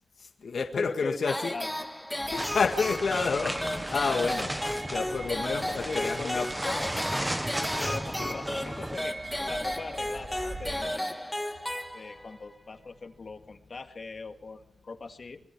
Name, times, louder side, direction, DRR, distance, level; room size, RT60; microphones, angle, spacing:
voice 1, 0.2-1.5 2.3-4.5 4.9-6.5, left 5 dB, 70° left, 5 dB, 1.8 m, -29 dB
voice 2, 0.8-1.2 1.5-1.7 5.7-6.9 7.8-11.4 11.9-15.4, left 4 dB, 45° left, 6 dB, 2.1 m, -40 dB
sound 1, 1.3-12.4, left 1 dB, 5° left, 1.7 m, -34 dB
sound 2, 2.2-10.8, right 2 dB, 40° right, 2.5 m, -44 dB
sound 3, 2.4-9.0, right 1 dB, 10° right, 1.0 m, -35 dB
26.0 x 22.5 x 4.8 m, 0.68 s
wide cardioid pair, 130°, 0 cm